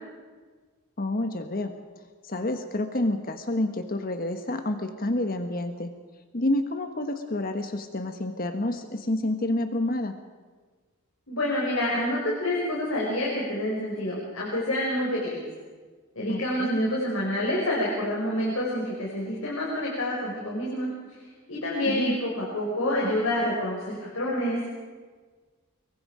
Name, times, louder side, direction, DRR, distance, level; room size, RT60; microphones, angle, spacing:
voice 1, 1.0-1.7 2.2-5.9 6.3-10.2 16.3-16.8 21.9-22.2, left 1 dB, 40° left, 7 dB, 1.3 m, -29 dB
voice 2, 11.3-15.4 16.2-20.9 21.5-24.7, left 1 dB, 65° left, -4 dB, 5.5 m, -27 dB
25.5 x 23.0 x 5.0 m, 1.4 s
head